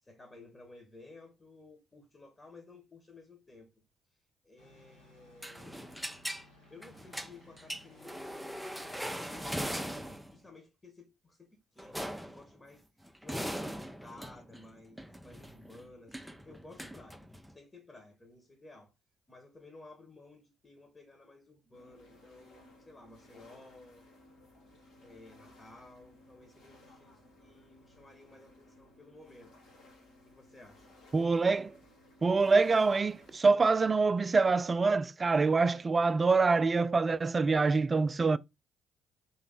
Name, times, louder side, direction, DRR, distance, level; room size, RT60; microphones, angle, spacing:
voice 1, 0.0-3.7 4.4-5.9 6.7-10.0 10.3-17.3 17.5-18.9 19.3-24.1 25.0-29.5 30.2-31.0, left 2 dB, 25° left, 1.5 m, -55 dB
sound 1, 4.6-10.2, left 1 dB, 90° left, 2.5 m, -60 dB
sound 2, 5.4-6.5 6.8-10.4 11.8-12.5 13.0-17.5, equal, ahead, 0.7 m, -40 dB
sound 3, 21.7-33.5, left 1 dB, 65° left, 2.1 m, -59 dB
voice 2, 31.1-31.7 32.2-38.4, right 4 dB, 35° right, 0.3 m, -25 dB
4.0 x 3.2 x 4.1 m
figure-of-eight pair, 45°, 0 cm